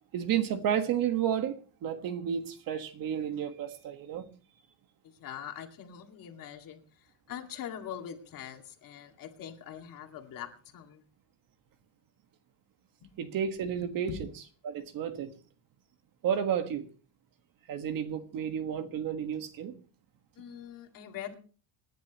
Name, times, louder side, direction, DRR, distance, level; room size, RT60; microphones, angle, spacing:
voice 1, 0.1-4.3 13.2-14.1 14.6-15.3 16.2-16.9 17.7-19.7, right 9 dB, 45° right, 1.6 m, -31 dB
voice 2, 5.0-11.0 13.0-13.1 14.1-14.3 20.4-21.3, left 9 dB, 45° left, 2.2 m, -43 dB
27.0 x 10.5 x 3.0 m
cardioid pair, 160°, 45 cm